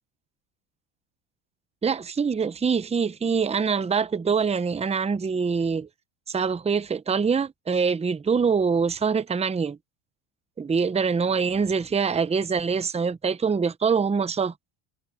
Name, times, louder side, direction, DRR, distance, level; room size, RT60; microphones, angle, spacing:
voice 1, 1.8-5.9 6.3-9.8 10.6-14.5, right 5 dB, 15° right, 0.8 m, -24 dB
supercardioid pair, 110°, 49 cm